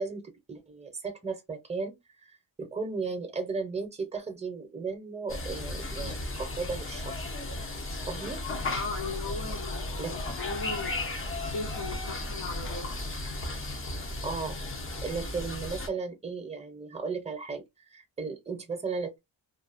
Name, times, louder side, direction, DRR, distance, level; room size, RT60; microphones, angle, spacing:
voice 1, 0.0-7.3 8.1-8.4 10.0-10.1 14.2-14.6 15.0-19.2, right 4 dB, 15° right, 0.6 m, -35 dB
sound 1, 5.3-15.9, left 2 dB, 30° left, 0.6 m, -35 dB
voice 2, 8.7-13.0, left 3 dB, 70° left, 1.2 m, -38 dB
2.4 x 2.3 x 2.4 m
wide cardioid pair, 120°, 47 cm